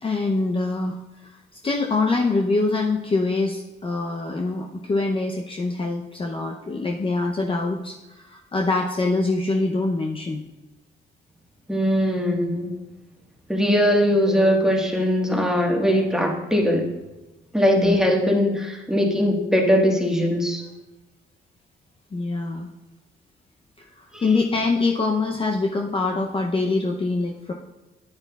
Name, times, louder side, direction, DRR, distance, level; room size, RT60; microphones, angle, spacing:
voice 1, 0.0-1.0 1.2-1.4 1.6-10.4 17.8-18.0 22.1-22.7 24.0-27.5, left 3 dB, 25° left, 1 dB, 0.7 m, -24 dB
voice 2, 11.7-12.7 13.5-16.9 17.5-20.6 24.1-24.2, equal, 5° right, 0 dB, 1.5 m, -20 dB
9.6 x 9.1 x 2.4 m, 1.1 s
cardioid pair, 90°, 20 cm